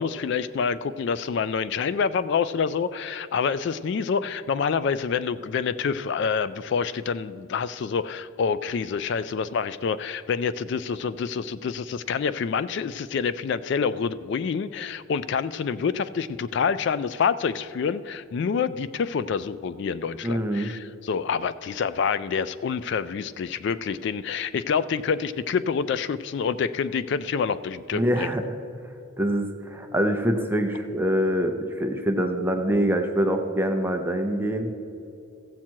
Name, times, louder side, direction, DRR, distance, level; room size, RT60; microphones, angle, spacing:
voice 1, 0.0-28.3, left 6 dB, 55° left, 15 dB, 0.3 m, -27 dB
voice 2, 20.2-20.7 27.9-28.4 29.2-34.7, equal, 10° right, 4 dB, 0.6 m, -25 dB
15.5 x 7.4 x 4.5 m, 2.8 s
head